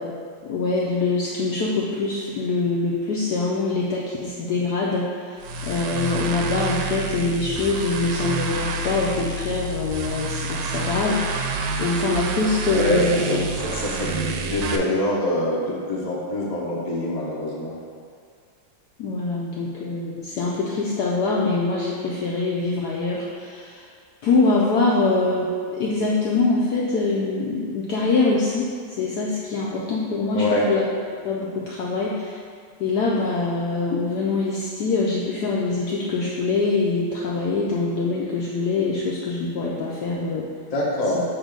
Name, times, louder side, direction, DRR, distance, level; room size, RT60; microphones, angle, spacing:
voice 1, 0.4-13.2 19.0-23.8 24.2-30.9 31.2-32.3 32.8-40.5, left 3 dB, 75° left, -4 dB, 0.9 m, -24 dB
sound 1, 5.4-14.8, right 2 dB, 75° right, 1.1 m, -28 dB
voice 2, 12.7-17.7 30.3-30.7 40.7-41.2, left 1 dB, 45° left, -5 dB, 0.5 m, -25 dB
7.2 x 2.7 x 5.0 m, 2.1 s
omnidirectional pair, 2.3 m